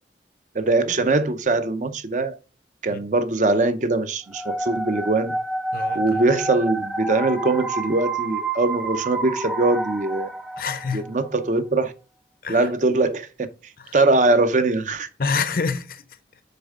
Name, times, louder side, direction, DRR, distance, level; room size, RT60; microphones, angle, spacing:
voice 1, 0.5-2.4 2.8-5.4 5.9-10.3 10.9-11.9 12.5-13.5 13.9-15.1, right 2 dB, 45° right, 0.6 m, -22 dB
sound 1, 4.3-11.1, right 2 dB, ahead, 0.5 m, -29 dB
voice 2, 5.7-6.2 10.6-11.1 12.4-12.6 15.2-16.0, left 4 dB, 55° left, 0.6 m, -26 dB
6.7 x 4.4 x 3.6 m
head